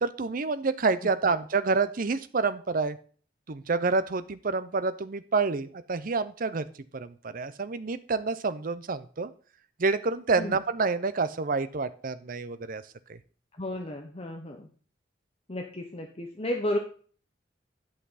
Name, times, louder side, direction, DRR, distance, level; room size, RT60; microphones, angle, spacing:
voice 1, 0.0-3.0 3.5-6.7 6.9-9.3 9.8-12.8 13.1-13.2, right 4 dB, 50° right, 13 dB, 0.6 m, -28 dB
voice 2, 13.6-14.7 15.5-16.8, left 1 dB, 30° left, 3 dB, 0.9 m, -32 dB
11.0 x 5.8 x 4.1 m, 0.43 s
head